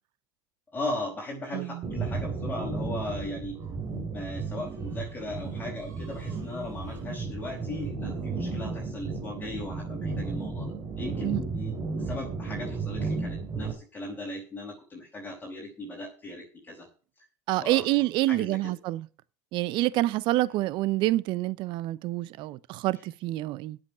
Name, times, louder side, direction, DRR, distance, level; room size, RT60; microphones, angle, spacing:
voice 1, 0.7-3.6 4.1-10.7 11.0-16.9 17.6-17.9 18.3-18.7, left 2 dB, 20° left, 5.2 m, -38 dB
voice 2, 1.5-1.8 11.2-11.4 17.5-19.1 19.5-23.8, right 17 dB, 55° right, 0.8 m, -27 dB
sound 1, 1.8-13.7, right 4 dB, 35° right, 4.2 m, -34 dB
8.7 x 8.0 x 9.0 m
supercardioid pair, 105°, 9 cm